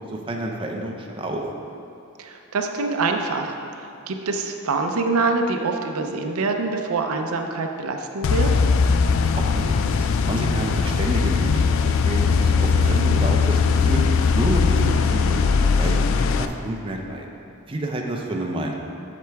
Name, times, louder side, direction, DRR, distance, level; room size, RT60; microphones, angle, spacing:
voice 1, 0.1-1.4 9.4-11.6 12.0-14.0 14.3-15.4 15.8-17.3 17.7-18.7, right 1 dB, 25° right, 1 dB, 0.5 m, -29 dB
voice 2, 2.2-8.5 12.8-13.0 14.8-14.9 18.3-18.4, right 3 dB, 75° right, 4 dB, 0.6 m, -25 dB
sound 1, 8.2-16.5, left 5 dB, 60° left, 0.3 m, -20 dB
7.6 x 6.8 x 3.5 m, 2.6 s
head